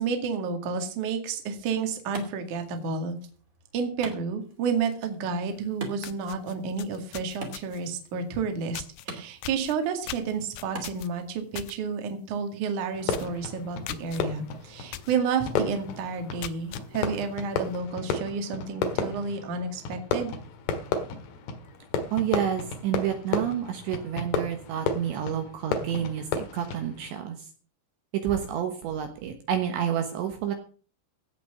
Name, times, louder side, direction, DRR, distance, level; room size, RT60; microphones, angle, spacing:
voice 1, 0.0-3.1 3.7-20.3, right 5 dB, 50° right, 6 dB, 2.7 m, -30 dB
Wood, 1.3-11.3, right 3 dB, 30° right, 1.7 m, -45 dB
sound 1, 5.6-5.7 6.0-7.9 8.7-9.1 9.4-11.8 12.1-12.4 12.7-12.8 13.1-13.4 13.9-14.2 14.9-15.2 15.6-15.7 16.2-16.9, left 14 dB, 80° left, 2.7 m, -40 dB
Fireworks, 12.9-27.2, left 5 dB, 65° left, 3.2 m, -33 dB
voice 2, 22.1-27.5 28.1-30.5, right 9 dB, 70° right, 6 dB, 3.2 m, -29 dB
16.5 x 6.1 x 7.2 m, 0.40 s
omnidirectional pair, 5.9 m